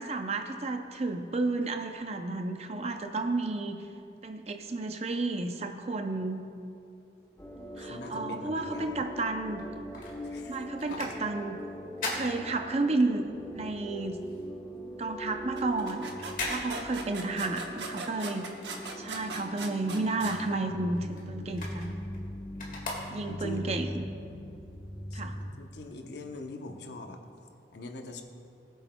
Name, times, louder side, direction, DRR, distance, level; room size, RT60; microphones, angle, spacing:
voice 1, 0.0-3.8 4.2-6.4 7.8-9.7 10.5-11.6 12.1-13.2 13.5-14.2 15.0-16.1 16.5-18.4 19.0-21.9 23.1-24.1 25.1-25.3, right 3 dB, 35° right, 6 dB, 0.6 m, -32 dB
sound 1, 7.4-25.5, equal, 15° left, 1.0 m, -41 dB
voice 2, 7.8-8.9 10.2-10.6 10.9-11.1 20.7-20.8 22.7-22.8 23.3-23.7 25.1-27.2 27.7-28.2, left 2 dB, 70° left, 4 dB, 0.8 m, -43 dB
sound 2, 9.5-13.2 13.5-19.5 19.8-23.6 24.1-24.2, left 2 dB, 50° left, 1.8 m, -41 dB
sound 3, 15.6-20.4, right 3 dB, 85° right, 1.0 m, -39 dB
19.5 x 8.0 x 2.2 m, 2.6 s
head